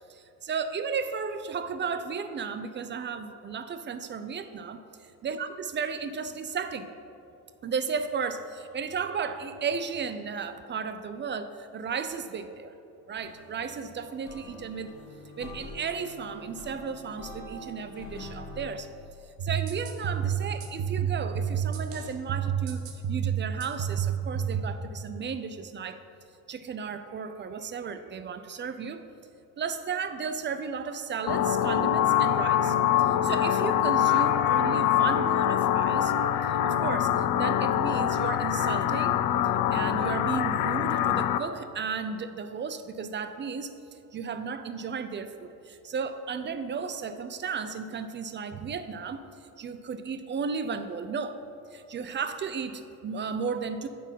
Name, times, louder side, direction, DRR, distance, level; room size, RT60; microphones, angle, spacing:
voice 1, 0.1-4.8 5.2-6.9 7.6-12.7 13.1-14.9 15.4-18.9 19.4-22.8 23.1-26.0 26.5-29.1 29.6-36.1 36.5-39.2 39.7-43.7 44.1-49.3 49.6-51.4 51.7-53.9, right 5 dB, 25° right, 10 dB, 0.4 m, -34 dB
sound 1, 13.2-18.7, left 1 dB, 65° left, 1.5 m, -45 dB
sound 2, 19.4-24.6, right 8 dB, 70° right, 1.1 m, -30 dB
sound 3, 31.3-41.4, left 11 dB, 45° left, 0.5 m, -24 dB
9.3 x 4.0 x 5.4 m, 2.7 s
hypercardioid pair, 60°, 50 cm